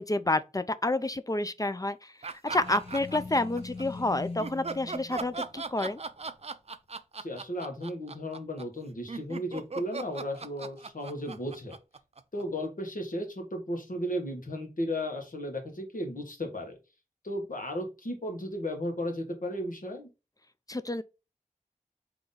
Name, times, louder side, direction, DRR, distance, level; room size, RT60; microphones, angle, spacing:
voice 1, 0.0-2.1 2.4-6.0 20.7-21.0, left 2 dB, 25° left, 0.4 m, -29 dB
sound 1, 2.2-3.8 4.4-12.7, right 4 dB, 50° right, 0.4 m, -38 dB
sound 2, 2.5-6.4, left 3 dB, 45° left, 0.9 m, -43 dB
voice 2, 7.2-11.7 12.3-16.8 17.2-20.1, equal, 80° left, 1.2 m, -35 dB
3.7 x 2.9 x 4.0 m
wide cardioid pair, 45°, 14 cm